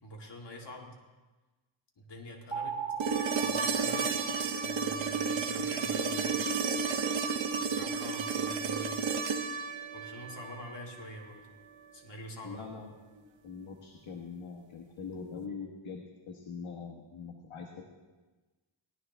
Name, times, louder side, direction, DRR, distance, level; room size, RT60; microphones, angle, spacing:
voice 1, 0.0-1.0 2.0-2.8 3.3-4.1 4.6-6.6 7.7-9.1 9.9-11.5 11.9-12.7, left 1 dB, 55° left, 0 dB, 2.2 m, -46 dB
sound 1, 2.5-5.0, right 6 dB, 10° right, 1.9 m, -38 dB
sound 2, 3.0-11.1 13.2-13.3, right 5 dB, 65° right, 1.0 m, -32 dB
voice 2, 12.4-12.9 13.4-17.9, left 5 dB, 80° left, 1 dB, 1.4 m, -43 dB
18.0 x 12.0 x 3.4 m, 1.2 s
wide cardioid pair, 95°, 49 cm